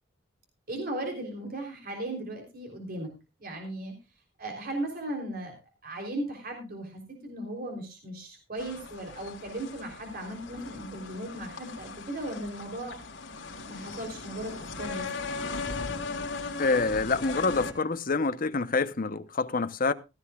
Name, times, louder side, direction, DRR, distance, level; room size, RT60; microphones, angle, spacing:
voice 1, 0.7-3.1 3.4-3.9 4.4-5.6 5.8-13.0 13.7-15.1, right 1 dB, 50° right, 3.6 m, -37 dB
sound 1, 8.6-17.7, left 4 dB, 85° left, 3.1 m, -38 dB
voice 2, 16.6-19.9, left 3 dB, 50° left, 0.9 m, -27 dB
16.5 x 14.5 x 2.4 m
head